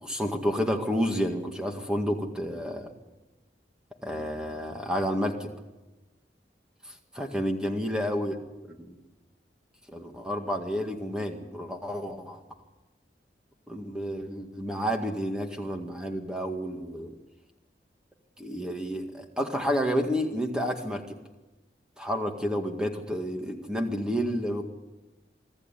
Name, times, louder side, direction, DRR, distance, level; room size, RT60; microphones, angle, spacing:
voice 1, 0.0-2.9 4.0-5.5 7.2-8.4 8.7-9.0 9.9-12.4 13.7-17.1 18.4-21.2 22.0-24.6, equal, 5° right, 3 dB, 1.9 m, -30 dB
25.0 x 13.5 x 8.4 m, 1.1 s
head